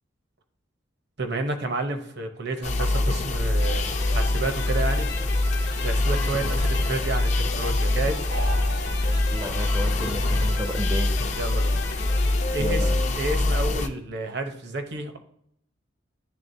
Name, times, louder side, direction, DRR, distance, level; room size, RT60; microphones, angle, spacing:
voice 1, 1.2-5.1 5.8-7.3 7.5-8.3 11.4-11.8 12.5-15.2, right 2 dB, 60° right, 6 dB, 0.8 m, -30 dB
sound 1, 2.6-13.9, left 2 dB, 40° left, 0.5 m, -24 dB
sound 2, 3.5-13.5, left 4 dB, 55° left, 0.9 m, -36 dB
sound 3, 8.3-9.8, right 2 dB, 75° right, 1.3 m, -37 dB
voice 2, 9.3-11.1 12.6-13.0, equal, 15° right, 5 dB, 0.5 m, -32 dB
10.5 x 3.7 x 2.6 m, 0.72 s
head